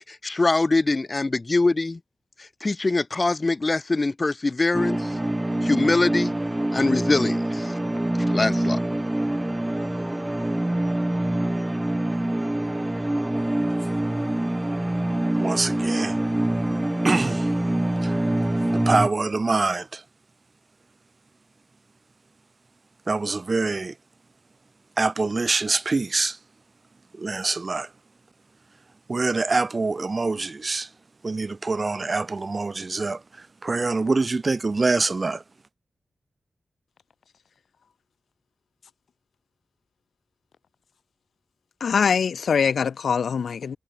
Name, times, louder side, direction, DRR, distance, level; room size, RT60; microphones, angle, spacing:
voice 1, 0.0-2.0 2.4-5.1 5.6-6.3 6.7-7.7 8.3-8.8, left 3 dB, 30° left, 4.0 m, -23 dB
sound 1, 4.7-19.1, right 1 dB, 15° right, 2.5 m, -25 dB
voice 2, 15.4-16.2 17.0-17.5 18.0-18.3 18.7-20.0 23.1-24.0 25.0-26.4 27.1-27.9 29.1-30.9 31.2-35.4, right 3 dB, 35° right, 6.8 m, -25 dB
voice 3, 41.8-43.8, left 6 dB, 85° left, 3.6 m, -23 dB
wide cardioid pair, 105°, 0 cm